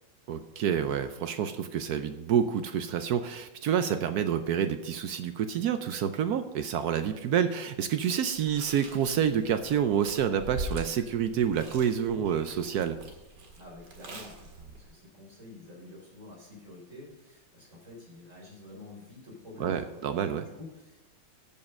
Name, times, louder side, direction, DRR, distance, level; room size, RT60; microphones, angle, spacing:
voice 1, 0.3-13.0 19.6-20.5, right 8 dB, 80° right, 9 dB, 0.8 m, -28 dB
Chewing mastication, 8.3-14.9, right 1 dB, 55° right, 2.3 m, -43 dB
voice 2, 13.6-20.0 20.4-21.0, left 2 dB, 35° right, -3 dB, 4.4 m, -48 dB
14.0 x 5.6 x 5.3 m, 1.1 s
omnidirectional pair, 2.4 m